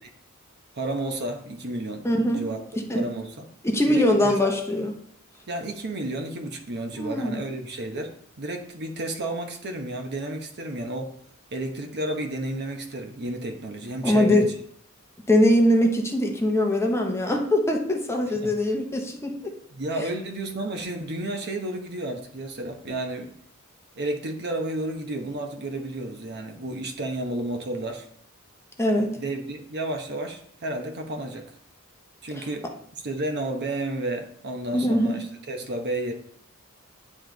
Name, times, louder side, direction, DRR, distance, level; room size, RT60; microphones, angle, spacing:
voice 1, 0.7-2.6 2.9-3.4 3.9-4.4 5.5-8.1 8.4-11.2 11.5-14.5 18.4-18.6 19.7-23.3 24.0-28.1 29.2-31.5 32.2-32.7 33.0-36.1, right 1 dB, 50° right, 4 dB, 0.9 m, -31 dB
voice 2, 2.0-2.5 2.9-3.1 3.6-5.0 6.9-7.4 14.0-14.5 15.3-19.5 28.8-29.2 32.4-32.5 34.7-35.2, left 1 dB, 10° left, 2 dB, 0.8 m, -22 dB
9.4 x 3.3 x 3.9 m, 0.66 s
head